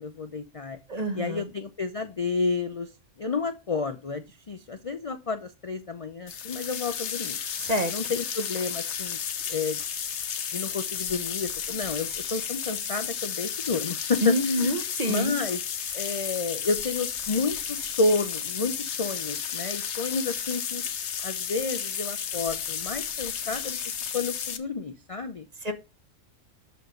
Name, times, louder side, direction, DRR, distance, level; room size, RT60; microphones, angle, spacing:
voice 1, 0.0-0.8 1.1-2.9 3.2-7.4 7.9-9.2 9.5-9.8 10.5-14.7 15.0-15.6 15.9-20.8 21.2-23.8 24.1-25.4, left 4 dB, 40° left, 8 dB, 0.5 m, -30 dB
voice 2, 0.9-1.5 7.6-7.9 14.2-15.3 25.6-25.7, equal, 35° right, 7 dB, 1.0 m, -27 dB
sound 1, 6.3-24.6, left 8 dB, 65° left, 1.1 m, -33 dB
6.6 x 4.9 x 6.4 m, 0.29 s
omnidirectional pair, 1.3 m